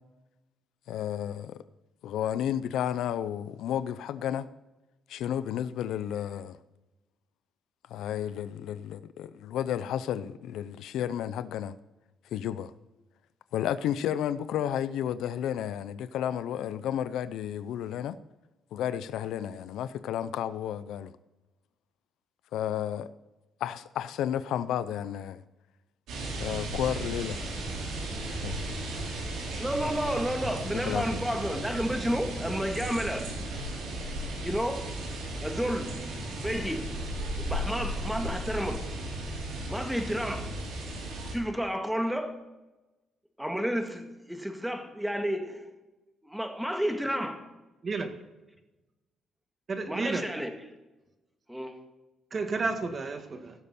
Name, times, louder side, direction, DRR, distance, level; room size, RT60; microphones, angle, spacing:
voice 1, 0.9-1.6 2.0-4.5 5.1-6.6 7.9-11.7 12.3-12.7 13.5-18.2 18.7-21.1 22.5-23.1 23.6-25.4 26.4-27.4 28.3-28.6 30.7-31.2, left 10 dB, 80° left, 0.5 m, -32 dB
sound 1, 26.1-41.3, right 1 dB, 80° right, 4.1 m, -35 dB
voice 2, 29.6-33.3 34.4-35.0 35.4-36.0 36.3-36.9 37.4-38.9 39.7-40.5 41.3-42.4 43.4-45.6 46.2-47.4 49.8-50.6 51.5-51.8, equal, 5° right, 1.8 m, -31 dB
voice 3, 49.7-50.2 52.3-53.5, right 4 dB, 40° right, 1.7 m, -31 dB
17.0 x 6.9 x 4.2 m
cardioid pair, 90°, 0 cm